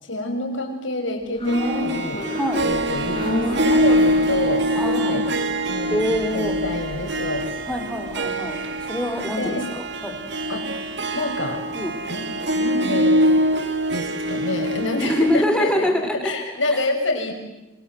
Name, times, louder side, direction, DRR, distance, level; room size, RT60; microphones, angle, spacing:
voice 1, 0.0-2.2 2.6-5.3 5.7-6.0 6.3-7.5 9.3-9.6 10.5-10.7 11.1-11.6 12.1-12.2 12.5-13.3 13.9-15.9 16.2-17.3, left 1 dB, 70° left, 3 dB, 6.7 m, -27 dB
sound 1, 1.4-9.7 10.0-10.1, equal, 30° left, 7.7 m, -32 dB
Harp, 1.5-15.4, equal, 60° right, 2.2 m, -24 dB
voice 2, 4.7-5.3 5.9-6.5 7.7-10.1 11.7-11.9 15.0-16.2 16.7-16.8, left 1 dB, 5° left, 3 dB, 4.7 m, -24 dB
27.5 x 26.0 x 8.0 m, 1.0 s
head